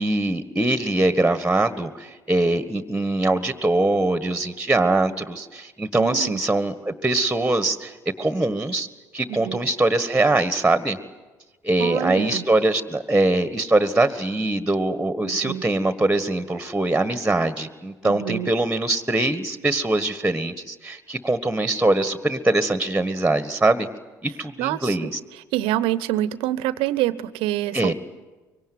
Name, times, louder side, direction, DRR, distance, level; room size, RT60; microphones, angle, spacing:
voice 1, 0.0-8.9 9.1-11.0 11.6-23.9 24.2-25.2 27.7-27.9, right 2 dB, 5° right, 12 dB, 1.5 m, -22 dB
voice 2, 6.0-6.4 9.3-9.6 11.8-12.5 15.2-15.6 18.0-18.5 24.6-25.1 25.5-27.9, right 14 dB, 60° right, 18 dB, 0.9 m, -26 dB
24.5 x 23.5 x 9.4 m, 1.2 s
figure-of-eight pair, 50°, 10 cm